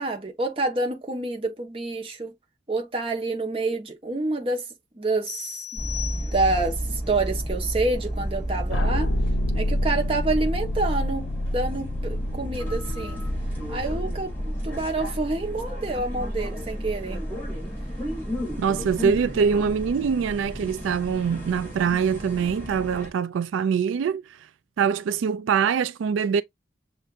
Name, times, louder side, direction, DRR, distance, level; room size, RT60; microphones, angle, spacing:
voice 1, 0.0-2.3 2.7-4.7 4.9-5.6 6.3-9.1 9.5-13.2 13.7-17.2, right 2 dB, 30° right, 1.1 m, -28 dB
sound 1, 5.3-6.8, left 11 dB, 40° left, 0.7 m, -37 dB
sound 2, 5.8-23.1, equal, 10° left, 2.8 m, -32 dB
sound 3, 8.7-15.6, left 1 dB, 85° left, 0.5 m, -29 dB
voice 2, 18.6-24.4 24.8-26.4, right 6 dB, 85° right, 0.3 m, -24 dB
6.3 x 2.5 x 2.5 m
head